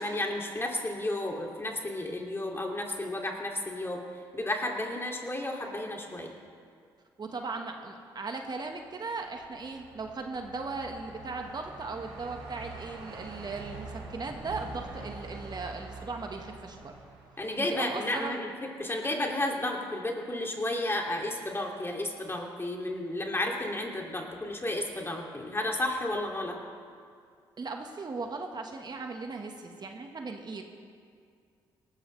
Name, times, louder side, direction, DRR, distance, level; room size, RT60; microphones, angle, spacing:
voice 1, 0.0-4.0 4.3-6.3 17.4-26.6, left 1 dB, 25° left, 0 dB, 2.6 m, -32 dB
voice 2, 7.2-17.0 17.6-18.4 27.6-30.6, right 3 dB, 45° right, 3 dB, 1.5 m, -38 dB
Truck, 8.8-18.2, right 3 dB, 75° right, 3.8 m, -45 dB
18.5 x 14.0 x 3.3 m, 2.2 s
supercardioid pair, 50°, 10 cm